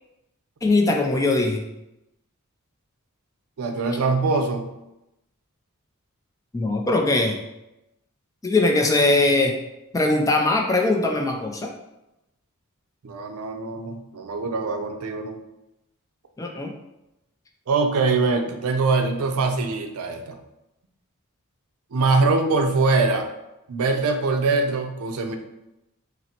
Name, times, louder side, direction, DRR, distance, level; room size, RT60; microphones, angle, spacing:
voice 1, 0.6-1.6 6.5-7.4 8.4-9.6 9.9-11.7 16.4-16.7, left 2 dB, 15° left, 2 dB, 0.4 m, -21 dB
voice 2, 3.6-4.7 13.0-15.4 17.7-20.4 21.9-23.3 23.7-25.4, right 3 dB, 80° right, 5 dB, 0.5 m, -23 dB
5.6 x 2.0 x 2.8 m, 0.91 s
head